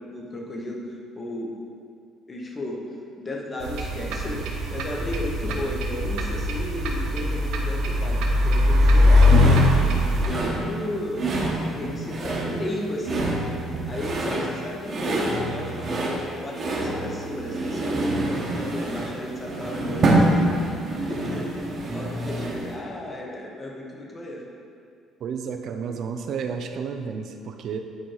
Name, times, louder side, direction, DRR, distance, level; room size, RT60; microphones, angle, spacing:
voice 1, 0.0-1.7 2.3-2.8 3.2-9.8 10.1-20.4 21.0-24.5, left 1 dB, 20° left, -1 dB, 1.0 m, -34 dB
sound 1, 3.6-10.3, left 1 dB, 90° right, 0.9 m, -21 dB
sound 2, 9.3-22.7, right 2 dB, 35° right, 1.2 m, -27 dB
voice 2, 25.2-27.8, right 6 dB, 50° right, 6 dB, 0.5 m, -31 dB
9.5 x 4.4 x 4.7 m, 2.3 s
cardioid pair, 155°, 0 cm